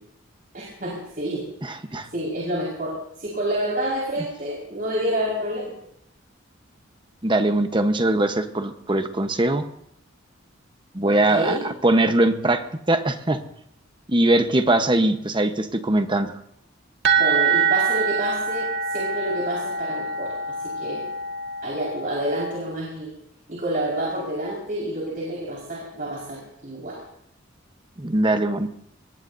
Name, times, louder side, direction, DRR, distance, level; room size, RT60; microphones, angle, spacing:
voice 1, 0.5-1.5 2.1-5.7 11.0-11.6 17.2-20.3 20.6-21.0 21.6-23.1 23.5-27.0, right 1 dB, 45° right, -4 dB, 5.2 m, -28 dB
voice 2, 1.6-2.1 7.2-9.6 10.9-13.4 14.1-16.3 28.0-28.7, right 1 dB, 25° right, 7 dB, 1.1 m, -21 dB
sound 1, 17.0-22.6, right 5 dB, 60° right, 1.9 m, -25 dB
24.0 x 21.5 x 2.7 m, 0.76 s
head